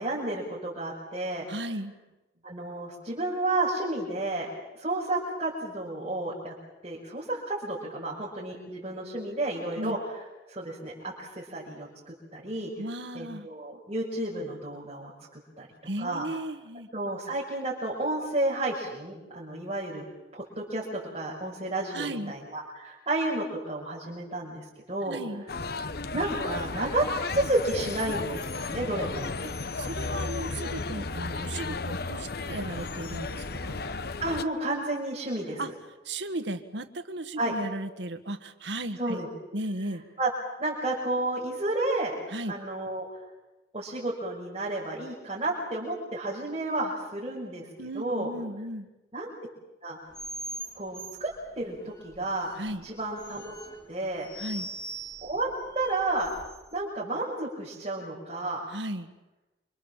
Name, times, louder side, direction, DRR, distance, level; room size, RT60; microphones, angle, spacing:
voice 1, 0.0-1.5 2.4-6.5 6.8-10.0 10.5-12.7 13.1-15.7 16.0-16.2 16.9-20.0 20.3-25.2 26.1-27.1 27.3-29.3 34.2-35.6 37.4-37.5 39.0-39.3 40.2-40.3 40.6-42.1 42.5-43.0 43.7-47.7 47.9-48.3 49.1-49.3 49.8-50.0 50.7-52.5 52.8-53.5 53.9-54.3 55.2-55.5 55.7-56.3 56.7-58.7, right 2 dB, 35° right, -5 dB, 6.3 m, -31 dB
voice 2, 1.5-1.9 9.8-10.0 12.8-13.5 15.9-16.9 21.9-22.3 25.1-25.4 29.4-33.8 35.6-35.7 36.0-39.2 39.5-40.0 42.3-42.5 47.8-48.9 52.6-52.9 54.4-54.7 58.7-59.1, right 1 dB, 85° right, 8 dB, 1.8 m, -35 dB
sound 1, 25.5-34.4, left 3 dB, 60° left, 1.0 m, -34 dB
sound 2, 50.1-56.8, right 2 dB, 25° left, 2.9 m, -42 dB
28.5 x 26.5 x 7.5 m, 1.0 s
head